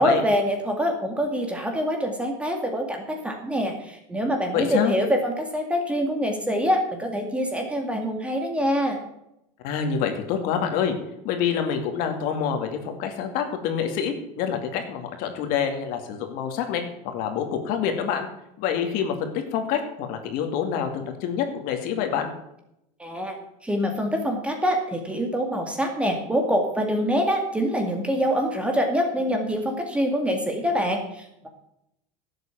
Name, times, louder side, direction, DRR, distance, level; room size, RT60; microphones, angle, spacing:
voice 1, 0.0-9.0 23.0-23.4 23.6-31.5, equal, 5° right, 4 dB, 2.1 m, -25 dB
voice 2, 4.5-4.9 9.6-11.0 11.2-18.3 18.6-22.3, left 7 dB, 60° left, 6 dB, 2.3 m, -27 dB
12.0 x 8.0 x 5.9 m, 0.82 s
supercardioid pair, 140°, 17 cm